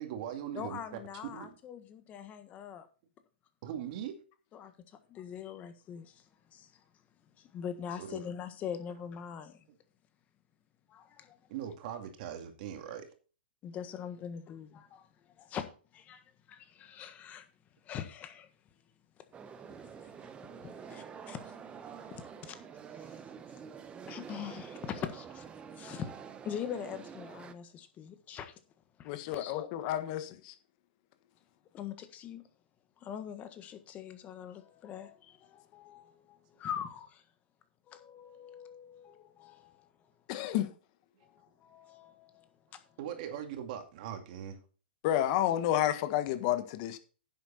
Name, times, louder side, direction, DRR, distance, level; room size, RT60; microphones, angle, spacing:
voice 1, 0.0-1.0 1.3-1.5 3.6-4.2 8.0-8.2 11.5-13.1 43.0-44.6, right 9 dB, 50° right, 2.4 m, -40 dB
voice 2, 0.5-2.9 4.5-6.2 6.5-6.7 7.4-9.6 10.9-11.4 13.6-15.1 15.4-15.6 15.9-16.2 16.5-17.4 17.8-18.5 19.8-22.6 23.0-23.1 24.1-25.4 25.8-26.1 26.4-28.5 29.0-29.8 31.7-32.4 33.0-37.2 37.9-39.9 40.3-40.4 41.2-42.5 42.7-42.8, left 8 dB, 25° left, 1.5 m, -43 dB
sound 1, 19.3-27.5, right 7 dB, 20° right, 1.0 m, -47 dB
voice 3, 29.0-30.5 40.3-40.7 45.0-47.0, left 12 dB, 45° left, 1.4 m, -30 dB
10.5 x 7.9 x 4.3 m
hypercardioid pair, 130°, 6 cm